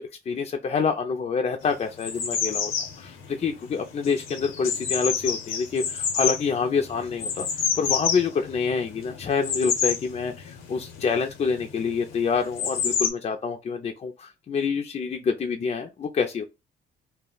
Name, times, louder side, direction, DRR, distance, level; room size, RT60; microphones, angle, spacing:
voice 1, 0.0-16.4, left 5 dB, 35° left, 0.4 m, -27 dB
sound 1, 1.7-13.1, left 7 dB, 85° left, 0.7 m, -29 dB
2.2 x 2.0 x 3.7 m
cardioid pair, 90°, 20 cm